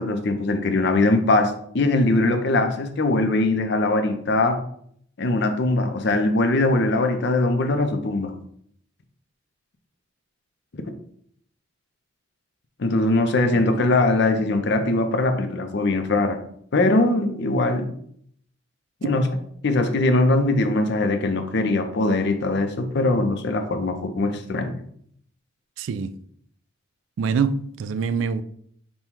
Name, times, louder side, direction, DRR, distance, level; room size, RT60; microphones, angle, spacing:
voice 1, 0.0-4.6 5.2-8.3 12.8-16.4 16.7-17.9 19.0-19.3 19.6-24.8, left 2 dB, 60° left, 0.6 m, -21 dB
voice 2, 25.8-26.1 27.2-28.4, right 5 dB, 70° right, 0.3 m, -25 dB
5.4 x 2.2 x 4.5 m
head